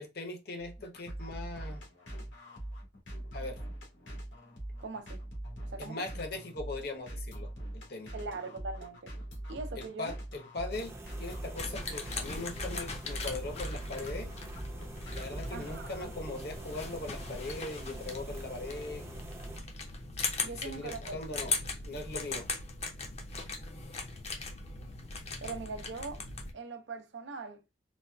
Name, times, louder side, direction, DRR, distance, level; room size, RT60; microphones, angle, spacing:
voice 1, 0.0-1.8 3.3-3.6 5.8-8.1 9.8-14.3 15.0-19.1 20.3-21.5 21.8-22.5, left 2 dB, 60° left, 0.9 m, -40 dB
sound 1, 0.6-16.0, right 1 dB, 90° left, 1.5 m, -42 dB
voice 2, 4.8-5.2 5.7-6.1 8.1-9.1 9.5-10.1 15.5-16.1 20.4-21.2 25.4-26.2 26.5-27.6, right 4 dB, 85° right, 0.6 m, -41 dB
sound 2, 10.7-19.6, right 2 dB, 15° right, 0.5 m, -47 dB
sound 3, 11.6-26.5, left 3 dB, 35° left, 0.6 m, -39 dB
4.0 x 2.3 x 2.2 m
head